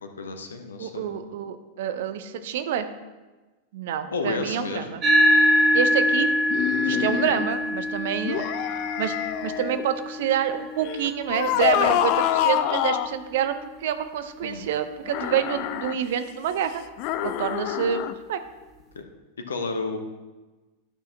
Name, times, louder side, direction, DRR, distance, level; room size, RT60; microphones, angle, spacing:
voice 1, 0.0-1.1 4.1-5.0 6.9-7.1 14.4-14.7 18.9-19.0 19.4-20.0, left 3 dB, 70° left, 6 dB, 0.9 m, -31 dB
voice 2, 0.8-2.9 3.7-5.0 5.7-6.3 6.9-8.5 9.0-9.1 9.4-16.8 17.2-18.4, right 9 dB, 55° right, 10 dB, 0.6 m, -27 dB
sound 1, 5.0-13.7, equal, 25° right, 1.7 m, -25 dB
sound 2, 6.5-7.5 8.2-9.8 10.8-13.2 15.1-16.0 17.0-18.1, left 12 dB, 45° left, 0.4 m, -26 dB
11.5 x 6.4 x 2.8 m, 1.2 s
figure-of-eight pair, 90°, 0 cm